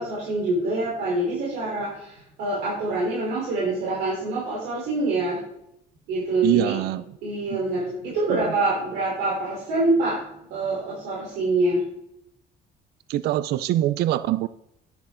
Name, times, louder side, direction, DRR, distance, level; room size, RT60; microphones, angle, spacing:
voice 1, 0.0-5.4 6.1-6.8 7.2-10.2 10.5-11.8, right 2 dB, 90° right, -5 dB, 3.9 m, -25 dB
voice 2, 6.4-7.0 7.5-7.6 8.3-8.4 13.1-14.5, right 14 dB, 70° right, 15 dB, 0.4 m, -23 dB
10.5 x 9.9 x 3.8 m, 0.79 s
cardioid pair, 110°, 17 cm